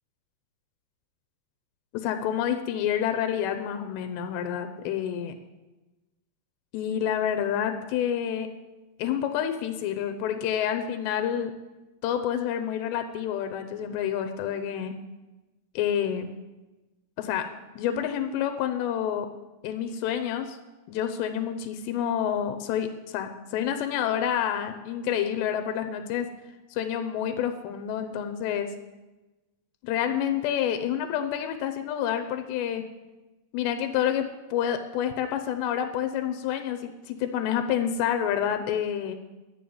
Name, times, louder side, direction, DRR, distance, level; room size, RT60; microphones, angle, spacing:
voice 1, 1.9-5.3 6.7-8.5 9.0-11.5 12.0-14.9 15.8-16.3 17.2-17.5 17.8-19.3 19.6-20.6 20.9-26.3 26.7-28.7 29.8-32.8 33.5-39.2, left 9 dB, 90° left, 7 dB, 3.1 m, -28 dB
12.0 x 7.2 x 8.6 m, 1.1 s
omnidirectional pair, 4.9 m